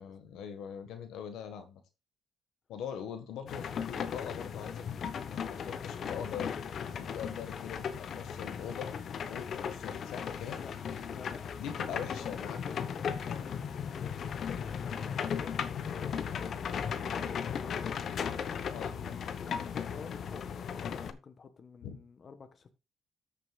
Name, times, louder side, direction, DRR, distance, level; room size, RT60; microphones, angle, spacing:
voice 1, 0.0-1.8 2.7-4.9 5.3-6.6 6.8-8.9 9.3-10.6 11.6-12.6 13.3-13.5 18.7-18.9 21.8-22.0, left 8 dB, 85° left, 1.5 m, -42 dB
sound 1, 3.5-21.1, left 7 dB, 60° left, 1.0 m, -36 dB
voice 2, 10.6-12.8 13.4-15.6 15.9-16.5 16.8-18.0 18.9-22.7, left 5 dB, 45° left, 1.2 m, -50 dB
13.5 x 6.7 x 2.4 m
cardioid pair, 90°, 0 cm